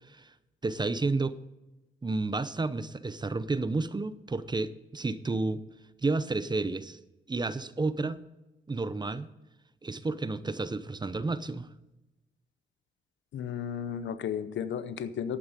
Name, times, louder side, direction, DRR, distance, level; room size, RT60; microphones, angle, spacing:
voice 1, 0.6-1.4 2.0-5.6 6.0-7.0 7.3-8.2 8.7-9.3 9.8-11.7, right 3 dB, 20° right, 15 dB, 0.7 m, -31 dB
voice 2, 13.3-15.4, left 8 dB, 75° left, 13 dB, 0.8 m, -34 dB
11.5 x 8.8 x 5.1 m, 1.0 s
cardioid pair, 75°, 19 cm